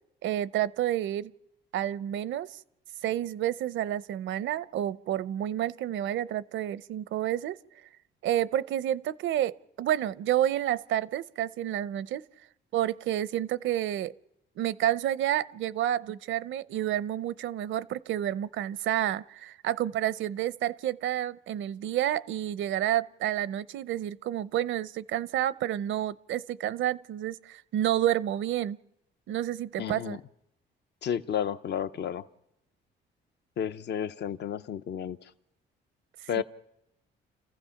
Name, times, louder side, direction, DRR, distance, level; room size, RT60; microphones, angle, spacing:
voice 1, 0.2-1.3 1.7-2.6 3.0-7.6 8.2-12.2 12.7-14.1 14.6-28.8 29.3-30.2 36.4-36.5, right 12 dB, 75° right, 0.6 m, -29 dB
voice 2, 29.8-30.2 31.0-32.2 33.6-35.2 36.3-36.4, left 9 dB, 60° left, 0.8 m, -31 dB
30.0 x 15.0 x 5.8 m
cardioid pair, 90°, 20 cm